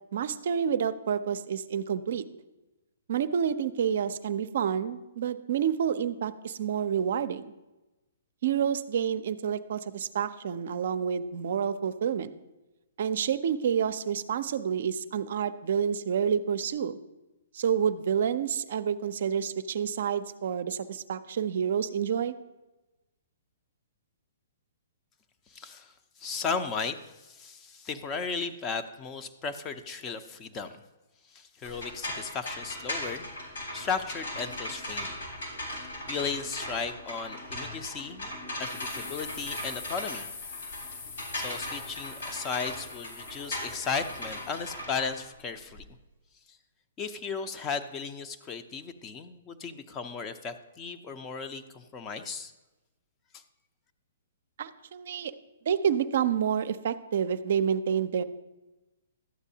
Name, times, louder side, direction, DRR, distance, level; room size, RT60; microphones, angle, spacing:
voice 1, 0.1-2.2 3.1-7.5 8.4-12.3 13.0-17.0 17.5-22.3 54.6-55.3 55.7-58.2, right 8 dB, 60° right, 12 dB, 0.4 m, -28 dB
voice 2, 25.5-30.8 31.3-33.3 33.7-35.2 36.1-38.3 38.6-40.3 41.3-45.8 46.5-46.6 47.0-52.5 53.3-53.4, left 5 dB, 25° left, 8 dB, 0.6 m, -35 dB
sound 1, 31.6-45.8, left 1 dB, 85° left, 3.6 m, -38 dB
sound 2, 38.6-44.8, left 5 dB, 55° left, 0.9 m, -44 dB
12.0 x 8.1 x 2.8 m, 1.1 s
hypercardioid pair, 130°, 0 cm